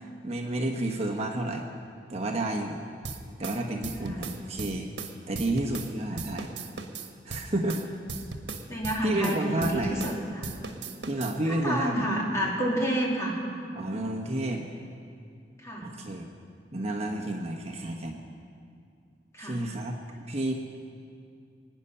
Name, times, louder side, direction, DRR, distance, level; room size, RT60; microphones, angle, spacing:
voice 1, 0.2-1.7 2.1-2.8 3.4-4.9 5.3-6.5 7.2-7.9 8.1-8.2 9.0-10.0 11.1-12.1 13.7-14.7 15.8-16.3 16.7-18.2 19.4-19.9 20.3-20.5, right 1 dB, 40° right, 1 dB, 1.1 m, -30 dB
sound 1, 3.0-5.9 6.2-10.2 10.4-11.4, right 4 dB, 85° right, 1.3 m, -37 dB
voice 2, 3.9-4.4 6.1-6.2 8.7-10.5 11.5-13.4 15.6-15.9 19.3-19.6, right 1 dB, 15° left, -3 dB, 2.9 m, -30 dB
25.5 x 9.8 x 5.7 m, 2.4 s
head